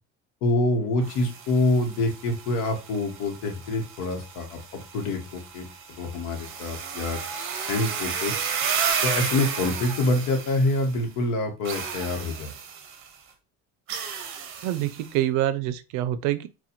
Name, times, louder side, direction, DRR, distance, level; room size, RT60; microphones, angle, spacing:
voice 1, 0.4-7.2 7.7-8.3 9.0-12.5, left 2 dB, 75° left, 1.0 m, -26 dB
sound 1, 1.0-11.0 11.6-13.1 13.9-15.1, right 6 dB, 40° right, 0.7 m, -33 dB
voice 2, 14.6-16.5, right 13 dB, 85° right, 0.5 m, -26 dB
4.1 x 2.2 x 2.7 m
cardioid pair, 130°, 31 cm